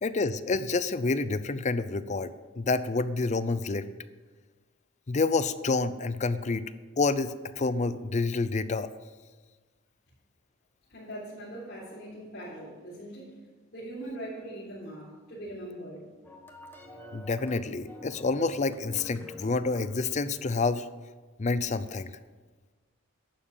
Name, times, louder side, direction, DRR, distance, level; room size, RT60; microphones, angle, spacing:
voice 1, 0.0-3.9 5.1-6.7 7.0-8.9 17.1-20.9 21.4-22.1, left 3 dB, 35° left, 13 dB, 0.5 m, -28 dB
voice 2, 10.9-13.4 13.7-16.1, right 1 dB, 55° left, -10 dB, 3.7 m, -41 dB
sound 1, 16.2-20.6, left 1 dB, 10° left, 1.3 m, -48 dB
11.5 x 7.3 x 7.3 m, 1.3 s
head